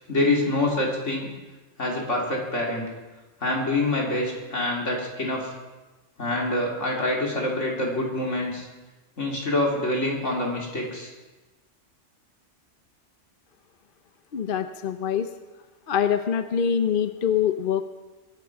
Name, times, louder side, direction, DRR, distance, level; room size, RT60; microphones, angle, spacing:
voice 1, 0.1-1.3 1.8-2.9 3.4-5.5 6.2-8.7 9.2-11.1, left 2 dB, 75° left, -1 dB, 3.4 m, -26 dB
voice 2, 14.3-15.3 15.9-17.8, left 8 dB, 50° left, 9 dB, 0.8 m, -24 dB
22.0 x 11.5 x 4.7 m, 1.2 s
omnidirectional pair, 1.2 m